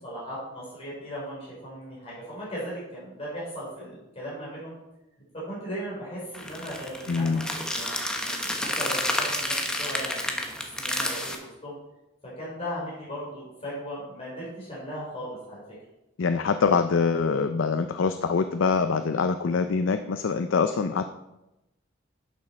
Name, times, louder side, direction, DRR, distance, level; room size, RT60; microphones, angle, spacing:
voice 1, 0.0-4.7 5.3-11.8 12.2-15.6, equal, 30° left, -7 dB, 3.9 m, -37 dB
sound 1, 6.3-11.3, left 1 dB, 5° left, 1.0 m, -30 dB
voice 2, 7.1-7.5 16.2-21.1, left 5 dB, 85° left, 8 dB, 0.5 m, -24 dB
11.5 x 6.4 x 4.3 m, 0.92 s
head